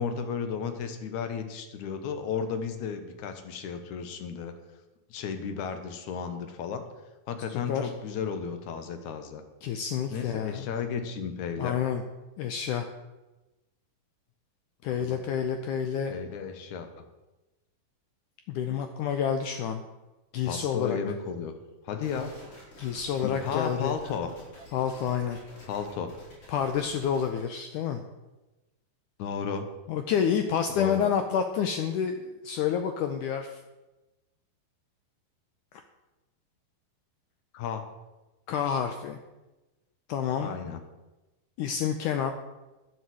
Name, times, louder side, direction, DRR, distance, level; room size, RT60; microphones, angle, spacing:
voice 1, 0.0-4.5 5.1-6.8 7.3-9.4 10.1-11.8 15.1-15.2 16.1-16.9 20.4-21.5 21.8-22.3 23.2-24.3 25.7-26.1 29.2-29.7 30.7-31.1 37.5-37.9 40.4-40.8, left 6 dB, 65° left, 8 dB, 2.1 m, -33 dB
voice 2, 7.5-7.9 9.6-10.7 11.6-12.0 12.4-12.9 14.8-16.2 18.5-19.8 20.3-21.0 22.8-23.9 24.7-25.4 26.5-28.0 29.9-33.6 38.5-39.2 40.1-40.5 41.6-42.3, left 8 dB, 90° left, 6 dB, 1.8 m, -29 dB
sound 1, 22.0-27.4, left 1 dB, 40° left, 5.2 m, -50 dB
11.5 x 7.6 x 7.7 m, 1.1 s
omnidirectional pair, 4.5 m